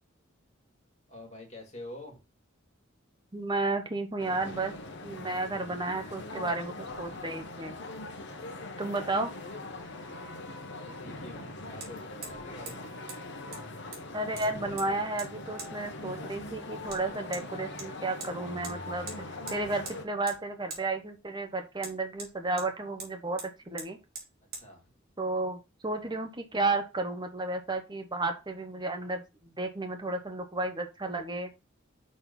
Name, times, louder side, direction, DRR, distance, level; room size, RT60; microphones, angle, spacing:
voice 1, 1.1-2.2 9.0-9.1 10.6-12.9 24.5-24.8, left 1 dB, 35° left, 0 dB, 2.7 m, -47 dB
voice 2, 3.3-4.7 5.0-7.8 8.8-9.3 14.1-19.1 19.5-24.0 25.2-29.2 29.6-31.5, right 2 dB, 20° right, 5 dB, 1.0 m, -32 dB
sound 1, 4.2-20.1, left 2 dB, 60° left, 1.2 m, -41 dB
Hammer, 11.8-11.9 12.2-12.4 12.7-12.8 13.1-13.2 13.5-14.1 14.4-14.9 15.2-15.3 15.6-15.7 16.9-17.0 17.3-17.4 17.8-18.3 18.6-18.8 19.1-19.2 19.5-20.0 20.3-20.4 20.7-20.8 21.8-22.7 23.0-23.1 23.4-23.5 23.8-23.9 24.1-24.3 24.5-24.6, right 4 dB, 50° right, 2.7 m, -42 dB
6.4 x 4.4 x 5.5 m, 0.28 s
head